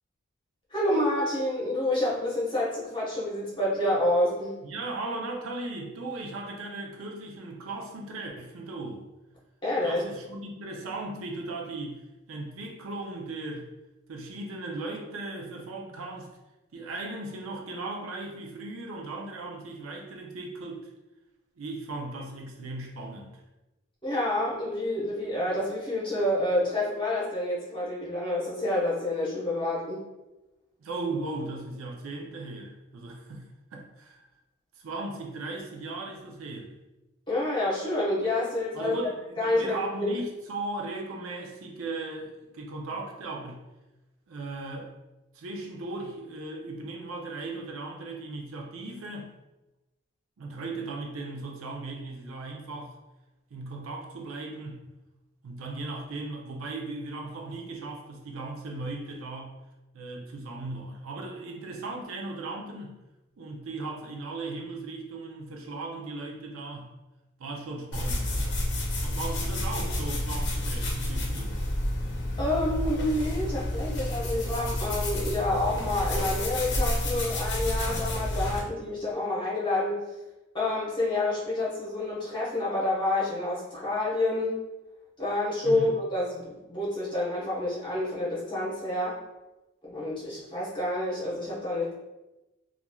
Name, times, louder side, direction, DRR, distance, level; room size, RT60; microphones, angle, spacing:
voice 1, 0.7-4.6 9.6-10.0 24.0-30.1 37.3-39.0 39.4-40.1 72.4-80.0 80.5-84.6 85.2-89.2 89.9-91.9, left 1 dB, 25° left, -7 dB, 0.9 m, -28 dB
voice 2, 4.6-9.0 9.8-13.7 14.1-16.3 16.7-20.9 21.6-23.4 30.8-34.3 34.8-36.7 38.7-43.6 44.3-44.9 45.3-49.3 50.4-53.0 53.5-54.9 55.4-59.6 59.9-63.0 63.4-66.9 67.4-68.5 69.0-71.6 85.6-85.9, right 2 dB, 75° right, 0 dB, 0.5 m, -37 dB
sound 1, 67.9-78.6, left 1 dB, 55° left, 0.6 m, -30 dB
3.0 x 2.4 x 2.2 m, 1.0 s
head